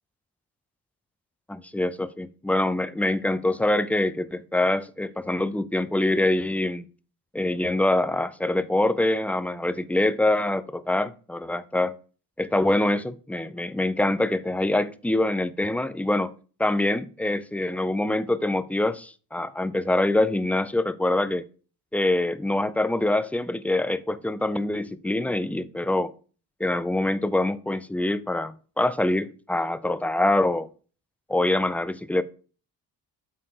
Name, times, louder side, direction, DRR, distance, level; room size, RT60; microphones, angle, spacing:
voice 1, 1.5-6.9 7.3-11.9 12.4-16.3 16.6-21.4 21.9-26.1 26.6-30.7 31.3-32.2, left 1 dB, 5° left, 0.4 m, -25 dB
7.5 x 4.1 x 6.6 m
cardioid pair, 100°, 39 cm